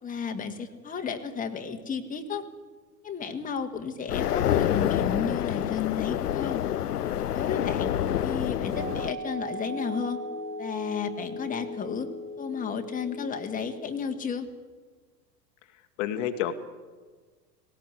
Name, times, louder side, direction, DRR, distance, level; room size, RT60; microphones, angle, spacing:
voice 1, 0.0-2.4 3.0-6.6 7.3-7.9 8.2-10.2 10.6-12.1 12.4-14.5, left 6 dB, 15° left, 5 dB, 1.7 m, -32 dB
sound 1, 4.1-9.1, left 11 dB, 70° left, 0.7 m, -27 dB
voice 2, 7.5-8.2 16.0-16.5, left 10 dB, 50° left, 7 dB, 1.6 m, -31 dB
sound 2, 8.7-14.2, equal, 20° right, 5.8 m, -38 dB
18.5 x 17.5 x 8.1 m, 1.4 s
figure-of-eight pair, 85°, 48 cm